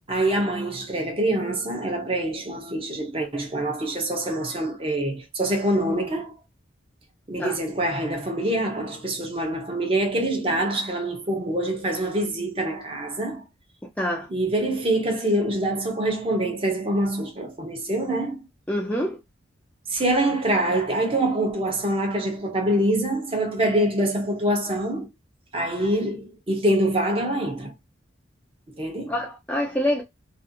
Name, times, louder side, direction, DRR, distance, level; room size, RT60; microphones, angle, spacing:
voice 1, 0.1-6.4 7.3-13.4 14.3-18.4 19.9-25.1 25.5-27.7 28.7-29.2, right 1 dB, 30° right, 0.6 m, -25 dB
voice 2, 14.0-14.3 18.7-19.2 29.1-30.0, left 1 dB, 5° left, 0.3 m, -25 dB
2.5 x 2.4 x 2.6 m
head